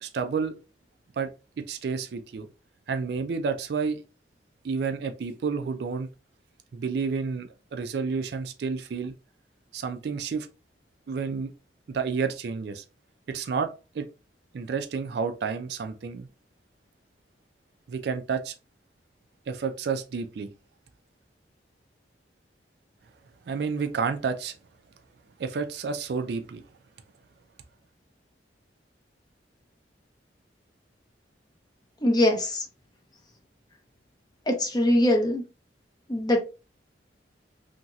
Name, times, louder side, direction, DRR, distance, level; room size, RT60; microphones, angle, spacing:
voice 1, 0.0-0.6 1.2-1.3 1.6-2.5 2.9-4.0 4.6-6.1 6.7-9.1 9.7-10.5 11.1-11.5 11.9-12.8 13.3-14.1 14.5-16.3 17.9-18.5 19.5-20.5 23.5-24.6 25.4-26.6, right 5 dB, 60° right, 0.3 m, -30 dB
voice 2, 32.0-32.6 34.5-35.4 36.1-36.4, left 1 dB, 20° left, 0.5 m, -22 dB
2.9 x 2.7 x 2.3 m
head